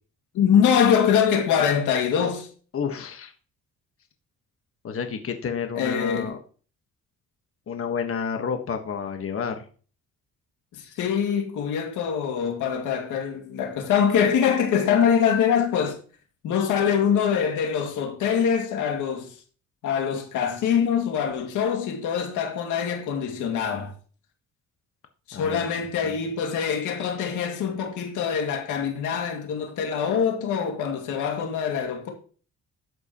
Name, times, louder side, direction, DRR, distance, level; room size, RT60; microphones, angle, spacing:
voice 1, 0.3-2.5 5.7-6.3 10.7-16.0 16.4-19.3 19.8-23.9 25.3-32.1, left 7 dB, 90° left, 2.2 m, -24 dB
voice 2, 2.7-3.3 4.8-6.4 7.7-9.7 25.3-26.2, left 6 dB, 45° left, 1.4 m, -30 dB
11.0 x 7.9 x 3.0 m
cardioid pair, 90°, 30 cm